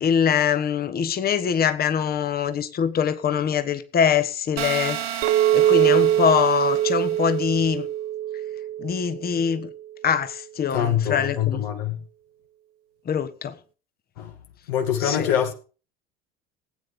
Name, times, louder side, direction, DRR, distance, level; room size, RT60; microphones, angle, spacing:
voice 1, 0.0-5.0 5.5-7.9 8.8-9.7 10.0-11.6 13.1-13.5 15.0-15.3, left 7 dB, 30° left, 1.4 m, -23 dB
sound 1, 4.6-7.4, right 9 dB, 70° right, 2.8 m, -33 dB
Chink clink, 5.2-9.7, right 12 dB, 45° right, 1.0 m, -23 dB
voice 2, 10.7-12.0 14.2-14.3 14.7-15.5, left 9 dB, 65° left, 2.2 m, -24 dB
19.0 x 9.3 x 3.7 m
figure-of-eight pair, 65°, 31 cm